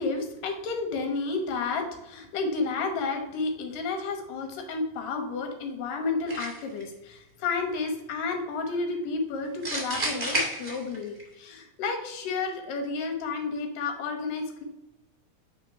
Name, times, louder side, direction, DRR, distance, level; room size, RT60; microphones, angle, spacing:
voice 1, 0.0-14.6, left 4 dB, 80° left, 5 dB, 2.7 m, -31 dB
sound 1, 6.3-6.8 9.6-11.2, right 1 dB, 40° right, 0.6 m, -30 dB
5.1 x 4.2 x 5.6 m, 0.94 s
omnidirectional pair, 3.9 m